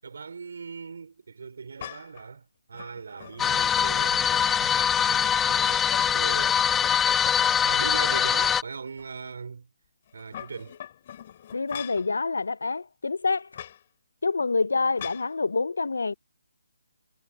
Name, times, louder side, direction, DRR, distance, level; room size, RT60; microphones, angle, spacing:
voice 1, 0.0-6.6 7.6-9.7 10.1-10.8, right 5 dB, 65° right, 5.4 m, -39 dB
sound 1, 1.8-2.2 2.7-4.2 4.6-5.3 5.7-6.4 6.8-8.6 9.0-9.1 10.1-12.1 13.5-13.8 15.0-15.3, left 10 dB, 40° left, 7.0 m, -42 dB
sound 2, 3.4-8.6, left 8 dB, 10° left, 1.2 m, -23 dB
voice 2, 11.5-13.5 14.2-16.1, left 4 dB, 75° left, 0.8 m, -27 dB
figure-of-eight pair, 150°, 0 cm